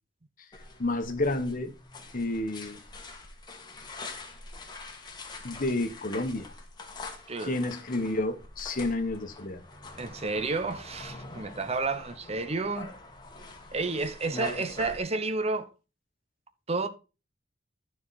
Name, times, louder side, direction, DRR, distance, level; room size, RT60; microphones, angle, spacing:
sound 1, 0.5-15.0, left 2 dB, 25° left, 1.5 m, -44 dB
voice 1, 0.8-1.7 2.1-2.8 5.4-6.5 7.4-9.6, left 2 dB, 45° left, 1.2 m, -30 dB
voice 2, 10.0-12.9 13.7-15.7 16.7-16.9, right 3 dB, 35° right, 0.9 m, -31 dB
11.5 x 4.8 x 4.2 m
head